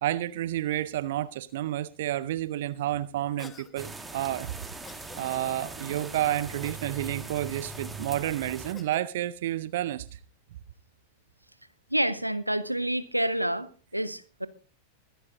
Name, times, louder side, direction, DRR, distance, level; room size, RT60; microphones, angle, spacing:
voice 1, 0.0-4.5 5.2-10.2, right 13 dB, 55° right, 0.6 m, -30 dB
Cough, 3.4-3.7 4.8-5.2 6.6-7.0 8.7-9.0, left 5 dB, 15° left, 1.4 m, -48 dB
sound 1, 3.8-8.7, right 3 dB, 10° right, 1.6 m, -40 dB
voice 2, 11.9-14.5, right 1 dB, 90° right, 0.8 m, -28 dB
23.5 x 11.5 x 2.5 m
figure-of-eight pair, 90°, 0 cm